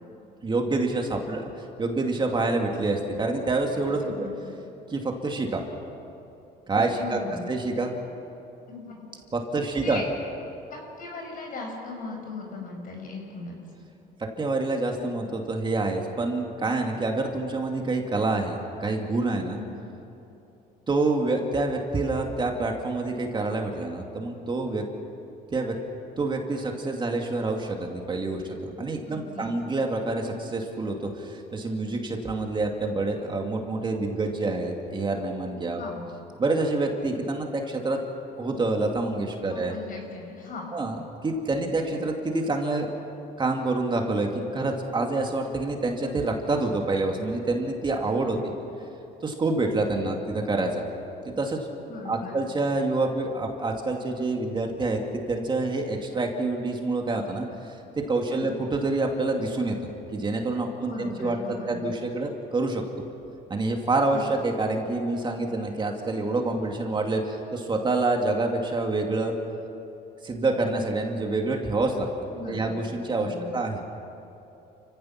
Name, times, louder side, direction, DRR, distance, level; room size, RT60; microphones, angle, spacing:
voice 1, 0.4-4.3 4.9-5.6 6.7-7.2 7.5-7.9 9.3-10.0 14.4-19.6 20.9-24.8 25.5-25.8 26.2-35.8 36.4-38.0 38.4-39.7 40.7-41.0 41.2-42.9 43.4-48.4 49.2-50.9 51.3-51.7 52.0-55.0 55.3-57.7 58.1-59.8 60.1-62.8 63.5-69.3 70.2-72.1 72.5-73.8, right 2 dB, 25° right, 2 dB, 2.3 m, -27 dB
voice 2, 4.0-4.3 7.0-7.4 8.7-9.0 9.6-10.0 10.7-13.6 19.5-19.7 29.1-29.5 35.8-36.0 39.5-40.7 48.3-48.4 51.8-52.3 58.3-58.5 60.8-61.8 64.1-64.2 72.3-72.8 73.2-73.5, left 3 dB, 55° left, 1 dB, 6.0 m, -38 dB
30.0 x 16.0 x 6.0 m, 2.9 s
cardioid pair, 110°, 17 cm